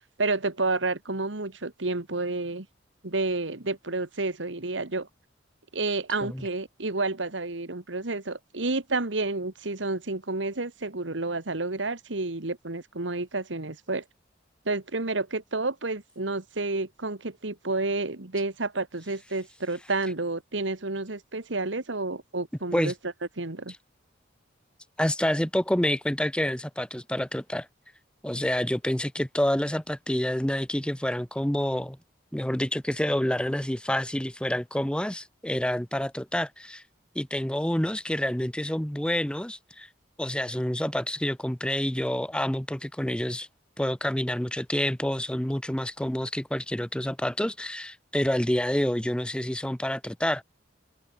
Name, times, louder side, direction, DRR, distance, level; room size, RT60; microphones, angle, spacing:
voice 1, 0.2-2.7 3.0-5.1 5.7-14.0 14.7-22.9 23.4-23.7, right 3 dB, 75° right, 1.9 m, -30 dB
voice 2, 25.0-27.7 28.2-32.0 32.3-36.8 37.1-39.9 40.2-43.5 43.8-50.4, left 1 dB, 5° left, 0.8 m, -28 dB
head